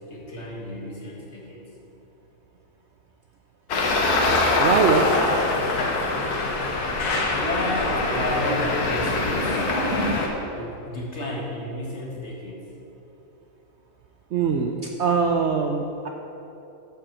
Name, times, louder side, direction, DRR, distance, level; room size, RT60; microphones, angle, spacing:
voice 1, 0.1-1.7 7.3-9.7 10.5-12.7, left 1 dB, 50° left, -3 dB, 1.8 m, -31 dB
Traffic noise roadway noise, 3.7-10.3, left 2 dB, 90° left, 1.6 m, -23 dB
voice 2, 4.6-5.2 14.3-16.1, right 5 dB, 65° right, 3 dB, 0.7 m, -22 dB
sound 1, 5.2-10.3, equal, 40° right, 1.2 m, -35 dB
8.2 x 5.9 x 7.3 m, 3.0 s
omnidirectional pair, 1.6 m